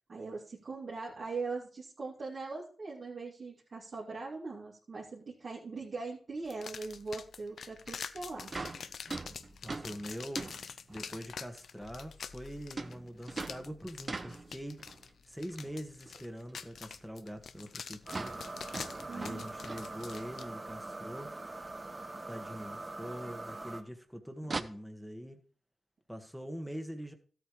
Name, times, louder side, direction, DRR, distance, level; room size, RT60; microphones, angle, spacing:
voice 1, 0.1-8.5 19.1-19.5, right 3 dB, 65° right, 2.6 m, -41 dB
sound 1, 6.4-20.5, left 6 dB, 75° left, 0.4 m, -46 dB
sound 2, 8.2-8.3 8.5-11.2 12.8-15.1 15.5-16.2 16.5-16.6 17.0-17.1 17.3-17.4 17.6-17.8 18.0-20.4 20.8-20.9 21.2-21.3 22.5-22.6 24.4-24.6, right 3 dB, 45° right, 0.8 m, -42 dB
voice 2, 9.6-10.5 10.9-14.8 15.2-18.3 19.0-21.3 22.3-25.4 26.1-27.1, equal, ahead, 1.6 m, -43 dB
sound 3, 18.1-23.8, right 2 dB, 30° right, 1.2 m, -43 dB
13.5 x 8.5 x 3.2 m
supercardioid pair, 45°, 0 cm